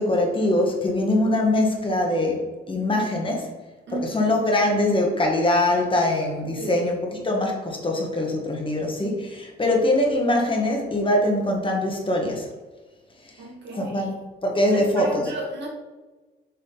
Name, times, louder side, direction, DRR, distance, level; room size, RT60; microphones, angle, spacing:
voice 1, 0.0-3.5 3.9-12.5 13.8-14.1 14.4-15.2, left 1 dB, 25° left, 0 dB, 1.4 m, -23 dB
voice 2, 3.9-4.3 6.6-6.8 13.4-14.2 14.7-15.7, right 2 dB, 65° right, -1 dB, 1.7 m, -33 dB
6.7 x 3.8 x 3.8 m, 1.2 s
cardioid pair, 90°, 20 cm